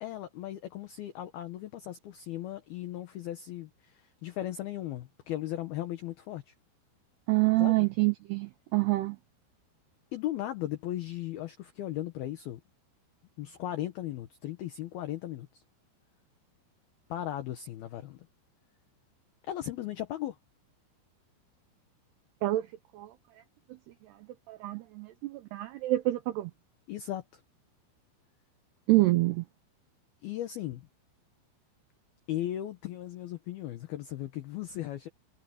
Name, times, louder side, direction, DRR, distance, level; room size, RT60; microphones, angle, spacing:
voice 1, 0.0-6.5 7.6-7.9 10.1-12.6 13.4-15.6 17.1-18.3 19.5-20.4 26.9-27.4 30.2-30.9 32.3-35.1, left 13 dB, 75° left, 2.4 m, -37 dB
voice 2, 7.3-9.2 22.4-22.7 22.9-23.1 24.5-26.5 28.9-29.4, right 20 dB, 85° right, 2.3 m, -27 dB
omnidirectional pair, 5.8 m